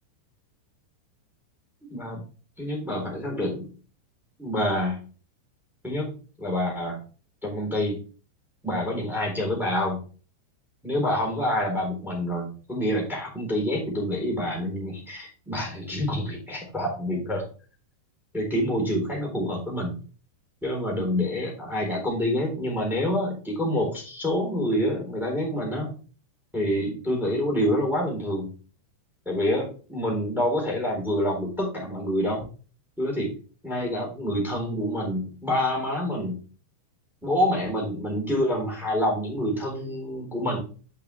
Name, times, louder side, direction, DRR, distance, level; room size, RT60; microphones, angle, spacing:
voice 1, 1.9-2.2 2.6-3.7 4.4-5.0 5.8-6.1 6.4-7.0 7.4-7.9 8.6-10.0 10.8-17.4 18.3-20.0 20.6-25.9 26.5-28.5 29.2-32.4 33.0-33.3 33.6-36.3 37.2-40.6, left 1 dB, ahead, -1 dB, 3.1 m, -27 dB
8.4 x 6.1 x 3.5 m, 0.36 s
omnidirectional pair, 5.8 m